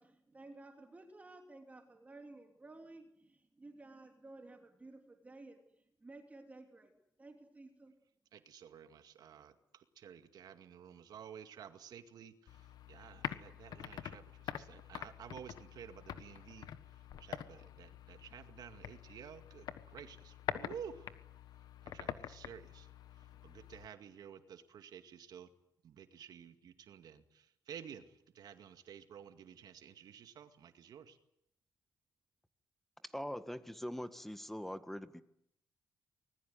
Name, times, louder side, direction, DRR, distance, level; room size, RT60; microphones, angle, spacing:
voice 1, 0.0-6.9 7.2-8.0, right 2 dB, 20° right, 4 dB, 3.1 m, -55 dB
voice 2, 8.3-12.3 12.9-16.7 17.2-21.1 21.9-22.9 23.4-25.5 25.8-28.1 28.3-31.2, right 8 dB, 80° right, 9 dB, 2.2 m, -52 dB
sound 1, 12.5-23.9, left 9 dB, 90° left, 1.4 m, -46 dB
voice 3, 33.0-35.2, equal, 5° left, 11 dB, 1.7 m, -42 dB
25.0 x 21.0 x 9.6 m, 0.75 s
cardioid pair, 125°, 7 cm